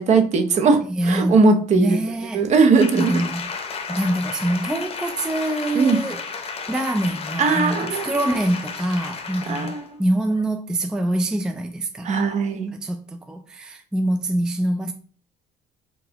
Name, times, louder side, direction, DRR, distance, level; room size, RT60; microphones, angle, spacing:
voice 1, 0.0-2.0 2.3-3.2 5.7-6.0 7.4-8.3 9.5-9.9 12.0-12.7, right 4 dB, 45° right, 0.7 m, -19 dB
voice 2, 0.9-1.4 1.7-2.4 2.9-3.5 3.9-6.2 6.7-12.1 12.8-14.9, right 1 dB, 5° right, 0.3 m, -24 dB
Applause, 2.8-9.9 10.3-10.4, left 5 dB, 35° left, 0.7 m, -33 dB
3.8 x 3.5 x 2.9 m
cardioid pair, 105°, 17 cm